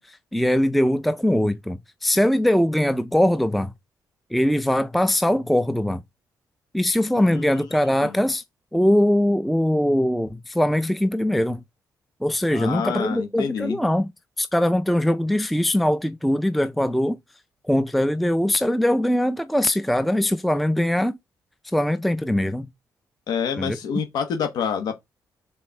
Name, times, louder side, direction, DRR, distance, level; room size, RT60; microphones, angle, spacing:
voice 1, 0.0-3.7 4.3-6.0 6.7-8.4 8.7-11.6 12.2-14.1 14.4-17.2 17.7-21.2 21.7-22.7 23.6-23.8, left 1 dB, ahead, 0.4 m, -21 dB
voice 2, 7.1-7.5 8.0-8.1 12.5-13.8 23.3-25.0, left 7 dB, 85° left, 1.1 m, -27 dB
6.4 x 4.0 x 5.8 m
cardioid pair, 160°, 7 cm